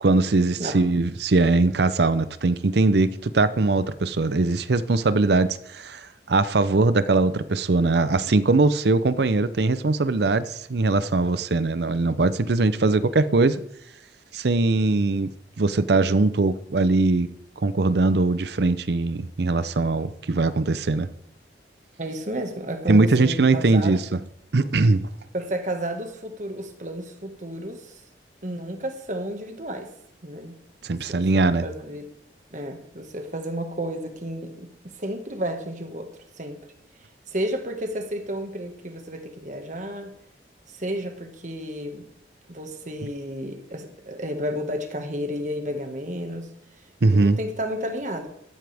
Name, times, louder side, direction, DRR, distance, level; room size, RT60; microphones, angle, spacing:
voice 1, 0.0-13.6 14.3-17.3 17.6-21.1 22.9-24.2 24.5-25.1 30.8-31.6 47.0-47.4, right 3 dB, 65° right, 0.6 m, -21 dB
voice 2, 22.0-24.0 25.3-28.0 28.4-29.9 30.2-30.6 31.1-32.1 32.5-34.7 35.0-36.1 36.4-36.6 37.3-40.1 40.7-42.1 42.5-46.5 47.1-48.3, equal, 45° right, 1.7 m, -32 dB
14.0 x 14.0 x 3.5 m
head